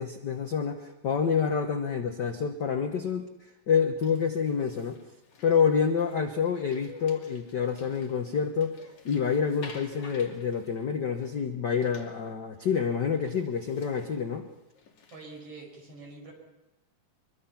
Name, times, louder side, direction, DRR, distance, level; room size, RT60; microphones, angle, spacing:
voice 1, 0.0-5.0 5.4-8.8 9.0-14.5, left 6 dB, 55° left, 5 dB, 1.2 m, -28 dB
sound 1, 4.0-11.5 11.8-12.5 12.7-12.8 13.2-15.4, left 4 dB, 75° left, 4.0 m, -52 dB
voice 2, 15.1-16.3, right 3 dB, 50° right, 1 dB, 6.7 m, -45 dB
24.0 x 23.5 x 5.8 m, 0.96 s
omnidirectional pair, 3.4 m